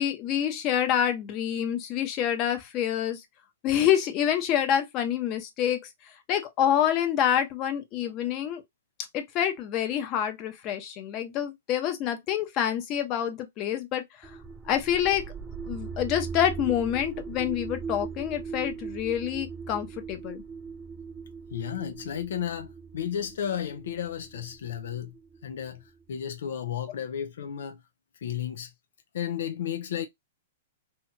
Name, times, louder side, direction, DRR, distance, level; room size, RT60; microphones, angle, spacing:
voice 1, 0.0-3.2 3.6-5.8 6.3-8.6 9.1-14.3 14.7-15.3 15.7-20.4, left 10 dB, 35° left, 0.7 m, -27 dB
sound 1, 14.2-26.0, right 5 dB, 15° right, 0.4 m, -40 dB
voice 2, 21.5-25.1 25.4-27.8 28.2-28.7 29.1-30.1, left 9 dB, 75° left, 0.4 m, -33 dB
2.8 x 2.7 x 2.3 m
hypercardioid pair, 135°, 0 cm